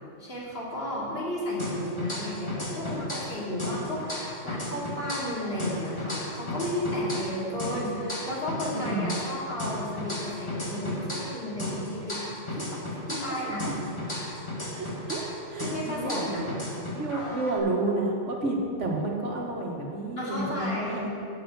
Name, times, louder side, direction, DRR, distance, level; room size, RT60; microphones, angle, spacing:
voice 1, 0.2-12.2 12.5-13.7 15.6-16.5 20.2-21.1, equal, 55° left, -5 dB, 2.7 m, -33 dB
sound 1, 1.6-3.3 3.6-7.3 7.6-11.3 11.6-15.3 15.6-17.6, left 1 dB, 25° left, 2.1 m, -34 dB
voice 2, 8.7-9.2 13.4-13.7 14.7-15.2 15.5-16.6 16.9-21.1, right 2 dB, 75° right, 0 dB, 1.9 m, -30 dB
10.5 x 6.1 x 8.0 m, 2.5 s
omnidirectional pair, 1.2 m